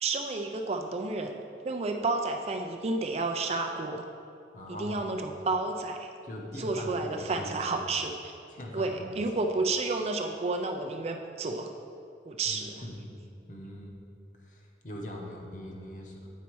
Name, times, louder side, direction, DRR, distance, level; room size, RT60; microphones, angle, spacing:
voice 1, 0.0-4.1 4.8-6.1 6.6-8.3 8.7-11.7 12.3-12.7, right 3 dB, 35° right, 4 dB, 0.4 m, -31 dB
voice 2, 4.5-5.1 6.2-7.8 8.5-9.2 12.4-13.2 13.5-14.0 14.4-16.4, equal, 45° left, 0 dB, 0.9 m, -42 dB
8.2 x 4.1 x 4.7 m, 2.6 s
head